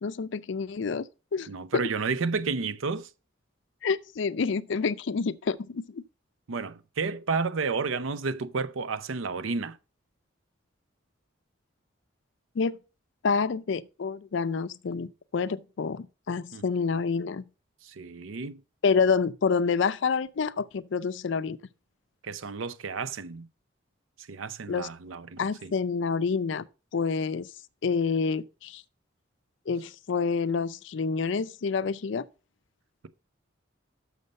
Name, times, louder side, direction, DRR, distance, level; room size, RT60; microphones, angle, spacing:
voice 1, 0.0-1.0 1.3-1.5 1.7-1.8 3.8-6.0 12.6-12.8 13.2-17.4 18.8-21.6 24.7-24.9 25.4-26.7 26.9-27.5 27.8-28.8 29.7-32.3, left 5 dB, 70° left, 0.4 m, -28 dB
voice 2, 1.5-3.1 6.5-9.8 16.5-16.6 17.8-18.6 22.2-23.5 24.3-25.7, right 4 dB, 90° right, 0.6 m, -31 dB
6.6 x 6.5 x 5.2 m
head